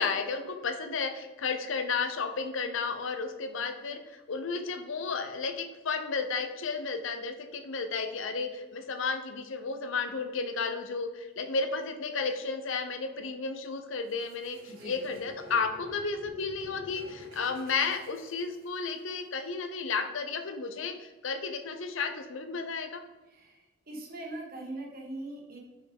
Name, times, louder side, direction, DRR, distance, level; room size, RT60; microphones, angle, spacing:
voice 1, 0.0-4.0 4.3-23.0, left 4 dB, 70° left, 8 dB, 0.6 m, -33 dB
sound 1, 14.1-19.0, left 2 dB, 80° right, 1.9 m, -48 dB
voice 2, 14.7-15.0 23.3-25.6, right 2 dB, 45° right, -1 dB, 1.3 m, -41 dB
5.5 x 5.5 x 3.5 m, 1.2 s
head